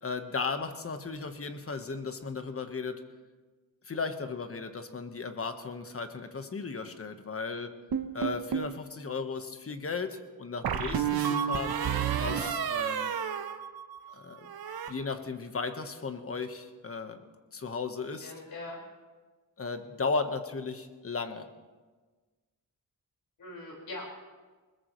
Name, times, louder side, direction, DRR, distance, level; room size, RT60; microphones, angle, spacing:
voice 1, 0.0-3.0 3.8-7.8 8.1-11.8 12.2-13.1 14.1-14.5 14.9-17.3 17.5-18.3 19.6-21.5, left 4 dB, 40° left, 8 dB, 1.3 m, -35 dB
sound 1, 7.9-8.8 10.6-14.1 14.4-14.9, right 8 dB, 85° right, 1.1 m, -31 dB
voice 2, 18.0-18.8 23.4-24.3, left 2 dB, 70° left, 0 dB, 5.0 m, -42 dB
21.0 x 20.5 x 3.2 m, 1.3 s
wide cardioid pair, 110°, 36 cm